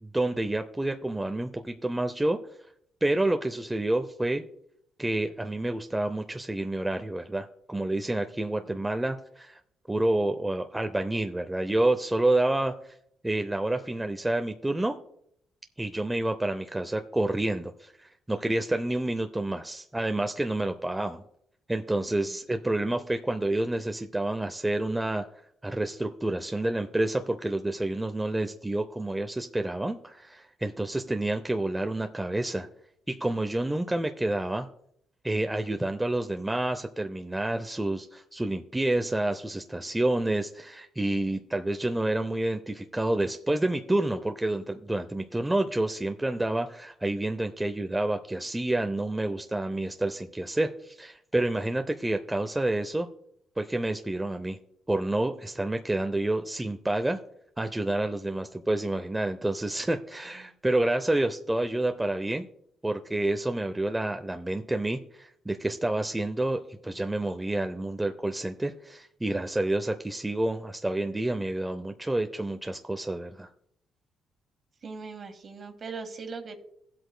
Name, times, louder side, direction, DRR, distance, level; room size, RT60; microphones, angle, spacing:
voice 1, 0.0-2.4 3.0-4.4 5.0-9.6 9.9-12.7 13.2-14.9 15.8-21.2 21.7-25.3 25.6-32.7 33.1-34.7 35.2-53.1 53.6-54.6 54.9-57.2 57.6-62.5 62.8-73.5, right 1 dB, 10° right, 6 dB, 0.6 m, -29 dB
voice 2, 74.8-76.5, right 4 dB, 45° right, 7 dB, 1.7 m, -40 dB
17.5 x 7.9 x 2.2 m, 0.72 s
cardioid pair, 90°, 0 cm